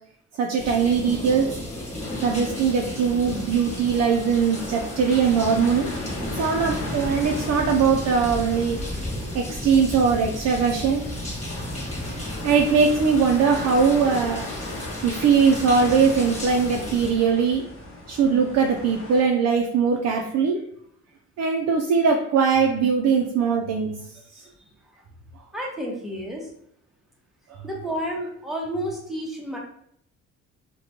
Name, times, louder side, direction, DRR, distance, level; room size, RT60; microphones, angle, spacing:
voice 1, 0.4-1.5 2.2-5.9 6.4-8.8 9.3-11.0 12.4-14.5 15.0-17.6 18.1-20.6 21.4-23.9, right 6 dB, 60° right, 1 dB, 0.4 m, -21 dB
sound 1, 0.6-17.1, left 1 dB, 25° left, 0.9 m, -33 dB
sound 2, 2.0-19.2, left 2 dB, 45° left, 0.8 m, -38 dB
voice 2, 25.5-26.5 27.6-29.6, equal, ahead, -2 dB, 0.7 m, -30 dB
2.8 x 2.2 x 2.8 m, 0.69 s
cardioid pair, 90°, 30 cm